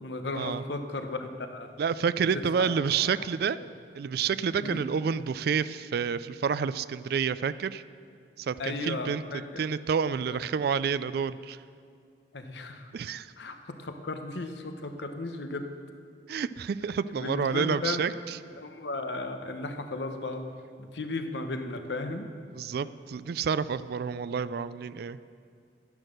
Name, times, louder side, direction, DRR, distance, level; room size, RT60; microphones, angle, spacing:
voice 1, 0.0-1.7 2.3-3.1 3.6-3.7 4.6-4.8 8.6-9.6 10.3-10.4 12.3-12.9 13.4-15.7 17.1-18.0 18.6-20.5 20.8-22.3, left 2 dB, 75° left, 6 dB, 1.0 m, -35 dB
voice 2, 1.8-3.6 3.9-7.8 8.4-9.2 9.6-11.6 12.9-13.3 16.3-18.4 22.5-25.2, right 6 dB, 60° right, 15 dB, 0.3 m, -29 dB
11.0 x 11.0 x 6.5 m, 2.3 s
head